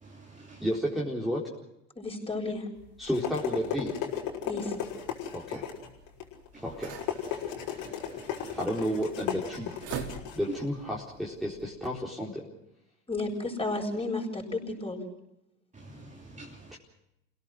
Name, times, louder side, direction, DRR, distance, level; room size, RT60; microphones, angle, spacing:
voice 1, 0.0-0.6 6.5-6.6 7.7-8.6 15.7-16.8, right 2 dB, 20° right, 2.9 m, -49 dB
voice 2, 0.6-1.4 3.0-3.9 5.3-5.6 6.6-7.0 8.6-9.7 10.3-12.5 16.7-16.8, equal, ahead, 4.2 m, -32 dB
voice 3, 2.0-2.7 4.5-4.7 13.1-15.0, left 2 dB, 15° left, 7.6 m, -32 dB
sound 1, 2.8-11.6, left 9 dB, 65° left, 5.6 m, -36 dB
sound 2, 3.0-10.7, right 6 dB, 55° right, 4.8 m, -46 dB
28.5 x 18.0 x 6.1 m
hypercardioid pair, 85°, 37 cm